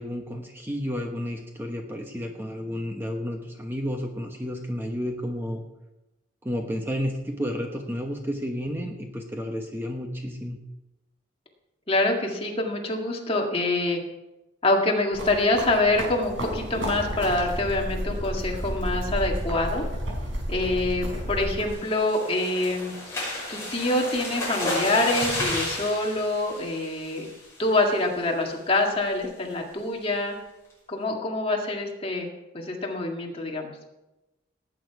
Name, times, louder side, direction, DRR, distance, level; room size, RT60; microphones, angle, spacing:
voice 1, 0.0-5.6 6.4-10.6, equal, 10° right, 2 dB, 1.0 m, -31 dB
voice 2, 11.9-14.0 14.6-19.8 20.5-22.9 23.5-27.3 27.6-30.4 30.9-32.3 32.5-33.7, left 2 dB, 30° left, 1 dB, 1.9 m, -25 dB
sound 1, 15.1-21.7, equal, 80° right, 5.1 m, -31 dB
sound 2, 21.7-27.4 27.9-28.1 28.5-28.6 28.9-29.2, left 1 dB, 15° left, 5.9 m, -32 dB
18.5 x 9.0 x 4.7 m, 1.0 s
head